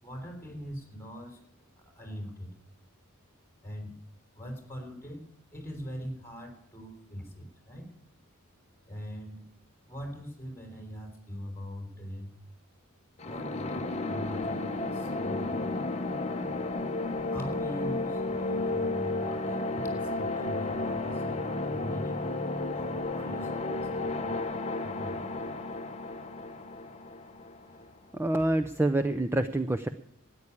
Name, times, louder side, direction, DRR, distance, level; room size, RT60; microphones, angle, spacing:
voice 1, 0.0-1.4 1.8-2.5 3.6-4.0 4.3-5.2 5.5-7.9 8.8-9.4 9.9-12.3 13.2-15.7 17.3-22.2 22.7-24.5 24.8-25.5, equal, 10° left, 4 dB, 3.5 m, -42 dB
sound 1, 13.2-27.9, left 2 dB, 30° left, 0.9 m, -33 dB
voice 2, 28.1-29.9, right 1 dB, 10° right, 8 dB, 0.5 m, -27 dB
13.0 x 9.8 x 8.5 m, 0.69 s
head